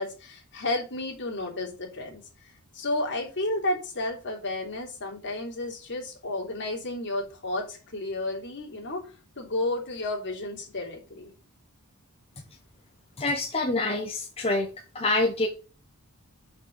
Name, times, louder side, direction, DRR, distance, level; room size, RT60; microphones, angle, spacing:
voice 1, 0.0-11.3, left 2 dB, 55° left, -1 dB, 3.3 m, -32 dB
voice 2, 13.2-14.7 14.9-15.5, left 2 dB, 25° left, 1 dB, 1.1 m, -26 dB
5.9 x 5.9 x 6.5 m, 0.36 s
head